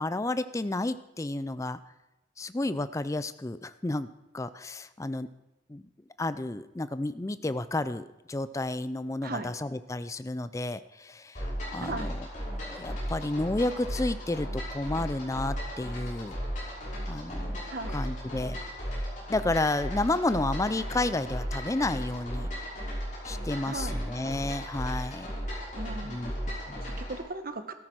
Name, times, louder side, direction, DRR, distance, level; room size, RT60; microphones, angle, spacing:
voice 1, 0.0-1.8 2.4-4.1 4.3-5.3 5.7-5.9 6.2-11.4 11.7-16.4 17.1-17.6 17.9-18.6 19.3-22.5 23.2-25.4 26.0-26.8, left 2 dB, 15° left, 14 dB, 0.4 m, -31 dB
sound 1, 11.3-27.2, equal, 40° left, 5.9 m, -35 dB
voice 2, 11.8-12.1 17.7-18.0 23.7-23.9 25.7-26.2 26.5-26.6 26.8-27.7, right 2 dB, 50° right, 9 dB, 1.0 m, -37 dB
13.5 x 13.5 x 4.6 m, 1.0 s
head